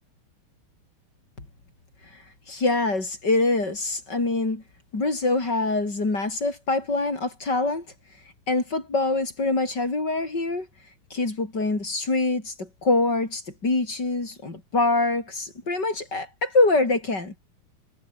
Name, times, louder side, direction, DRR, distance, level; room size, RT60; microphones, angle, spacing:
voice 1, 2.5-4.6 4.9-7.8 8.5-10.7 11.1-17.3, left 2 dB, 30° left, 5.1 m, -24 dB
omnidirectional pair, 4.1 m